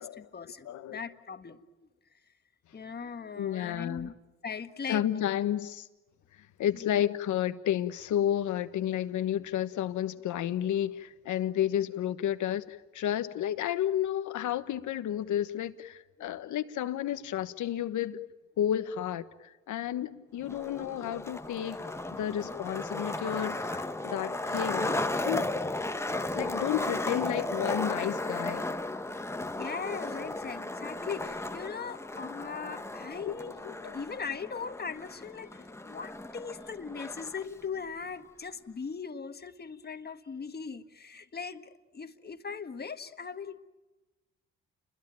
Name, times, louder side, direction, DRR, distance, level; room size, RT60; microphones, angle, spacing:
voice 1, 0.0-1.7 2.7-4.1 4.4-5.2 6.7-7.1 16.2-16.3 29.5-33.6 33.9-43.6, left 5 dB, 30° left, 1.6 m, -39 dB
voice 2, 0.6-1.0 3.3-4.1 4.9-5.9 6.3-18.2 18.6-21.8 22.1-25.5 26.3-28.7 33.2-33.3 33.6-34.0, left 11 dB, 75° left, 1.3 m, -31 dB
Skateboard, 20.4-37.4, left 2 dB, 10° left, 1.1 m, -35 dB
29.0 x 22.0 x 9.1 m
cardioid pair, 90°, 30 cm